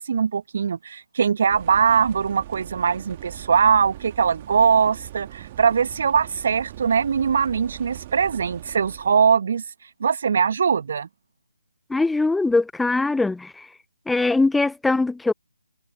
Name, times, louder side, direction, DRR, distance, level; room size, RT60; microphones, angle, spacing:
voice 1, 0.0-9.6 10.0-11.1, right 6 dB, 45° right, 1.5 m, -21 dB
sound 1, 1.5-9.1, right 14 dB, 25° right, 2.5 m, -41 dB
voice 2, 11.9-13.7 14.1-15.3, left 3 dB, 5° left, 0.4 m, -21 dB
figure-of-eight pair, 145°, 0 cm